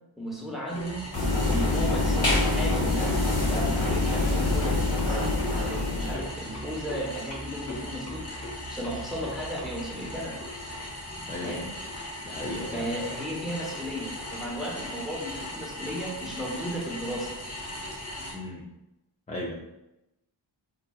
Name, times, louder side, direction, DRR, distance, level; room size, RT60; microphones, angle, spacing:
voice 1, 0.2-1.0 1.5-8.4 8.7-10.4 11.4-11.7 12.7-17.3, equal, ahead, -5 dB, 1.0 m, -35 dB
sound 1, 0.7-18.3, left 1 dB, 30° left, 0.8 m, -38 dB
sound 2, 1.1-6.1, left 2 dB, 90° left, 1.4 m, -25 dB
voice 2, 11.3-11.6 12.3-12.9 18.3-18.6 19.3-19.5, left 1 dB, 15° left, -4 dB, 0.4 m, -35 dB
3.8 x 2.6 x 2.3 m, 0.93 s
wide cardioid pair, 65°, 47 cm